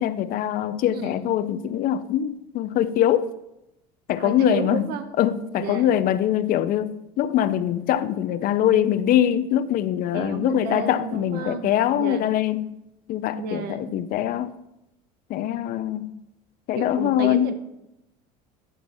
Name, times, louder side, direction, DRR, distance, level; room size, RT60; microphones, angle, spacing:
voice 1, 0.0-3.3 4.1-4.9 5.2-12.7 13.1-14.5 15.3-16.1 16.7-17.5, left 11 dB, 55° left, 0.5 m, -23 dB
voice 2, 0.9-1.3 4.2-5.1 5.6-5.9 10.1-12.2 13.4-13.9 16.7-17.5, right 6 dB, 60° right, 0.9 m, -32 dB
11.0 x 6.7 x 2.6 m
supercardioid pair, 105°, 18 cm